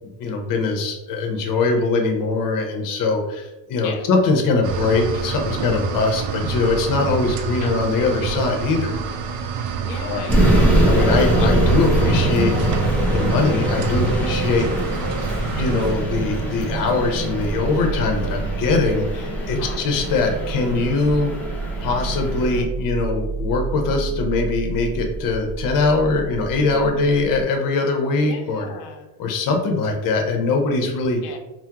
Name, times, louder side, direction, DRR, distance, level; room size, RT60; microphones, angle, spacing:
voice 1, 0.2-9.0 10.0-10.2 10.8-12.5 13.0-15.0 15.5-21.3 21.8-28.7 29.2-31.2, left 3 dB, 45° left, 3 dB, 0.6 m, -22 dB
sound 1, 4.6-15.9, right 6 dB, 75° right, 0.5 m, -28 dB
voice 2, 9.8-10.7 19.6-19.8 28.2-29.1 31.2-31.4, left 5 dB, 85° left, 4 dB, 0.6 m, -36 dB
sound 2, 10.3-22.6, right 1 dB, 5° left, 0.4 m, -22 dB
sound 3, 15.3-27.4, right 4 dB, 40° right, 1.2 m, -31 dB
3.5 x 2.0 x 2.8 m, 1.0 s
cardioid pair, 140°, 47 cm